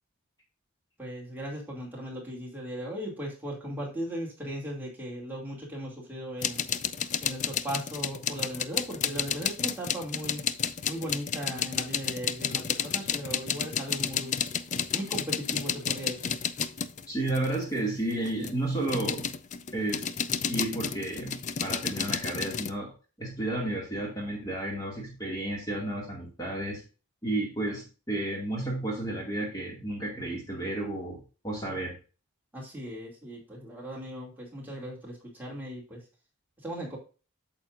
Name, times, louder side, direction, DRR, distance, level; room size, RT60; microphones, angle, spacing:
voice 1, 1.0-6.6 7.2-10.4 10.9-14.4 14.9-16.4 32.5-36.0 36.6-37.0, equal, 10° right, -3 dB, 2.5 m, -37 dB
sound 1, 6.4-17.6 18.1-22.7, left 7 dB, 35° left, 0.3 m, -31 dB
voice 2, 17.1-19.3 19.7-20.1 20.5-22.9 23.2-26.8 27.2-31.9, right 2 dB, 15° left, -2 dB, 2.1 m, -32 dB
8.8 x 7.1 x 2.5 m, 0.34 s
head